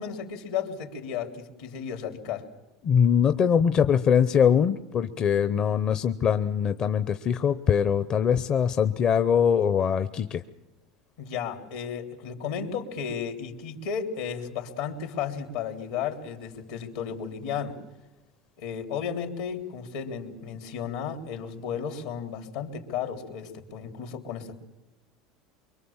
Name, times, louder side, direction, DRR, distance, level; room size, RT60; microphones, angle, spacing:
voice 1, 0.0-2.5 11.2-17.8 18.6-24.5, left 7 dB, 80° left, 4 dB, 3.4 m, -34 dB
voice 2, 2.8-10.4, left 7 dB, 40° left, 10 dB, 0.8 m, -22 dB
24.5 x 23.0 x 7.3 m, 1.0 s
supercardioid pair, 105°, 2 cm